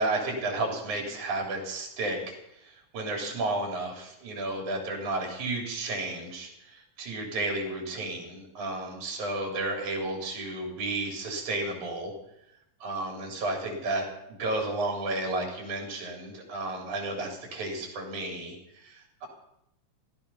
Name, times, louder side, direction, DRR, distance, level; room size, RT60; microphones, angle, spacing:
voice 1, 0.0-2.3 2.6-12.1 12.8-19.3, right 2 dB, 85° right, 1 dB, 4.6 m, -32 dB
16.0 x 12.5 x 5.5 m, 0.83 s
omnidirectional pair, 3.3 m